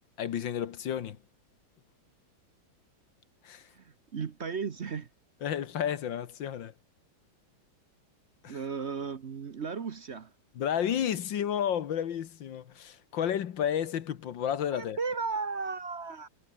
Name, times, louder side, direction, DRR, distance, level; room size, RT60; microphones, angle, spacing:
voice 1, 0.2-1.2 3.4-3.7 5.4-6.7 8.4-8.6 10.6-15.0, left 9 dB, 70° left, 1.9 m, -31 dB
voice 2, 4.1-5.1 8.5-10.3 14.7-16.3, right 5 dB, 45° right, 1.0 m, -35 dB
omnidirectional pair, 2.2 m